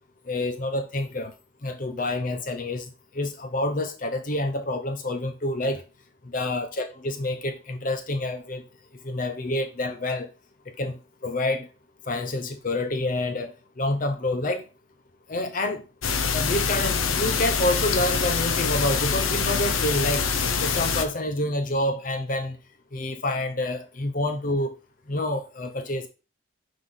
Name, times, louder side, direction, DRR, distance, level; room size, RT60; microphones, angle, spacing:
voice 1, 0.3-1.3 1.6-2.9 3.1-5.8 6.2-8.6 9.0-10.3 10.8-11.7 12.1-14.6 15.3-15.8 16.3-20.3 20.6-22.6 22.9-24.7 25.1-26.1, left 1 dB, 40° left, 0.7 m, -28 dB
sound 1, 16.0-21.0, left 5 dB, 85° left, 0.8 m, -25 dB
5.9 x 5.1 x 3.9 m
head